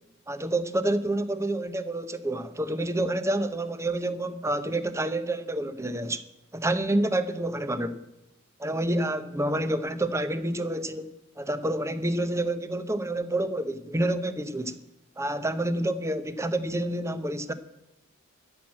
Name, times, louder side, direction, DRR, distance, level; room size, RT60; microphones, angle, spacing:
voice 1, 0.3-6.2 6.5-8.0 8.6-11.1 11.4-14.8 15.2-17.5, right 1 dB, 15° right, 0.7 m, -28 dB
12.5 x 6.1 x 8.7 m
head